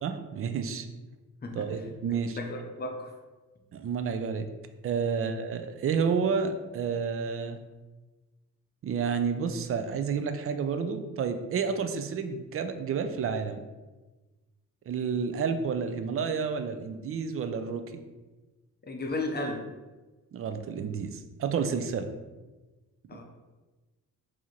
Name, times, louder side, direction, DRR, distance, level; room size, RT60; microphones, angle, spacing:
voice 1, 0.0-0.9 1.6-2.4 3.7-4.5 4.8-7.6 8.8-13.6 14.9-17.8 20.3-22.1, right 6 dB, 40° right, 8 dB, 0.4 m, -30 dB
voice 2, 1.4-1.9 2.4-3.1 5.1-5.3 18.8-19.7 23.1-23.2, left 2 dB, 30° left, 2 dB, 0.7 m, -35 dB
4.7 x 2.7 x 2.9 m, 1.2 s
cardioid pair, 105°, 33 cm